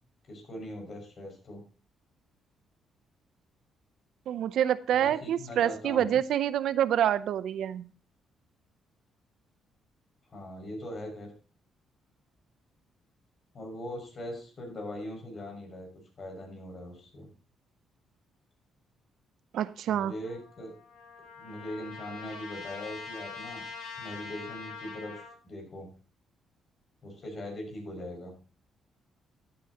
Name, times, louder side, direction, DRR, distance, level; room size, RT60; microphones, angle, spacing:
voice 1, 0.3-1.6 4.9-6.2 10.3-11.3 13.5-15.9 16.2-17.3 19.9-20.7 21.4-23.6 24.0-25.2 25.4-25.9 27.0-28.3, left 1 dB, 45° left, 1 dB, 6.1 m, -41 dB
voice 2, 4.3-7.9 19.5-20.1, right 10 dB, 75° right, 16 dB, 0.7 m, -27 dB
Trumpet, 20.2-25.4, left 4 dB, 85° left, 3.6 m, -43 dB
13.5 x 9.1 x 2.9 m, 0.37 s
cardioid pair, 90°, 0 cm